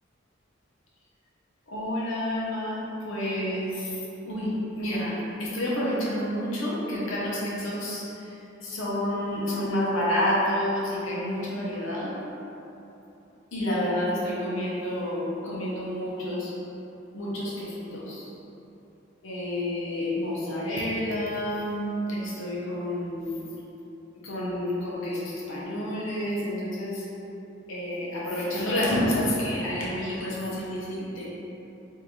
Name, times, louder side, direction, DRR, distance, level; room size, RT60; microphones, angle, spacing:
voice 1, 1.7-3.9 4.2-4.5 4.8-5.1 5.4-8.0 8.6-12.1 13.5-16.5 17.1-18.3 19.2-23.4 24.2-27.0 27.7-31.3, left 1 dB, 85° left, -7 dB, 0.7 m, -29 dB
3.6 x 2.6 x 3.0 m, 3.0 s
head